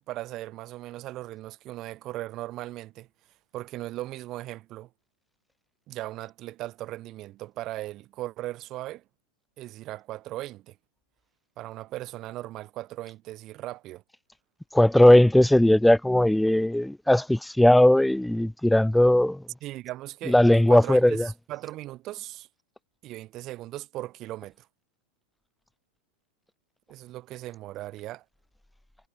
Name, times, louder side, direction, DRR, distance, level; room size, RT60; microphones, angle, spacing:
voice 1, 0.1-3.1 3.5-4.9 5.9-9.0 9.6-10.8 11.6-14.0 19.6-20.4 20.7-22.5 23.0-24.7 26.9-28.2, right 16 dB, 35° right, 3.0 m, -38 dB
voice 2, 14.7-19.4 20.3-21.3, left 1 dB, 5° left, 0.5 m, -18 dB
figure-of-eight pair, 90°, 0 cm